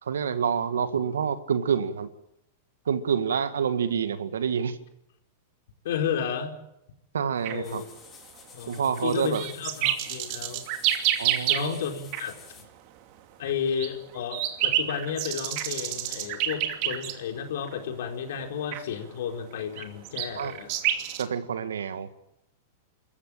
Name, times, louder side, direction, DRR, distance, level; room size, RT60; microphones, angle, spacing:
voice 1, 0.0-2.1 2.9-4.8 7.1-7.8 8.7-9.4 11.2-11.8 20.4-20.5 21.2-22.1, right 7 dB, 85° right, 11 dB, 1.9 m, -27 dB
voice 2, 5.8-6.5 7.5-7.9 8.5-10.7 11.5-12.7 13.4-20.7, left 7 dB, 70° left, 3 dB, 4.7 m, -32 dB
sound 1, 7.4-7.6 8.7-11.9 12.1-12.3 13.5-17.4 17.6-17.8 18.7-18.9 19.5-21.2, right 12 dB, 50° right, 2.6 m, -29 dB
sound 2, 7.6-12.6, left 7 dB, 30° left, 7.2 m, -50 dB
27.0 x 14.5 x 9.1 m, 0.84 s
hypercardioid pair, 110°, 0 cm